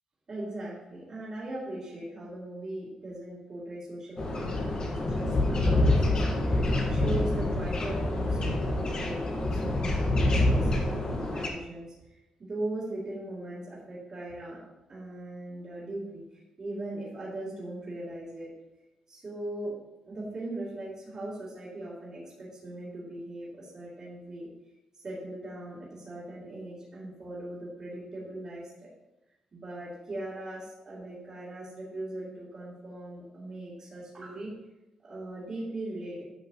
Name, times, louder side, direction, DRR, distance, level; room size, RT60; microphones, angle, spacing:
voice 1, 0.3-9.2 9.5-11.9 12.4-14.6 14.9-18.5 19.1-19.8 20.0-24.5 25.0-28.9 29.5-34.6 35.0-36.2, right 1 dB, 35° right, -10 dB, 3.1 m, -39 dB
sound 1, 4.2-11.5, left 1 dB, 40° left, 1.5 m, -26 dB
11.5 x 6.4 x 3.0 m, 0.99 s
cardioid pair, 120°, 2 cm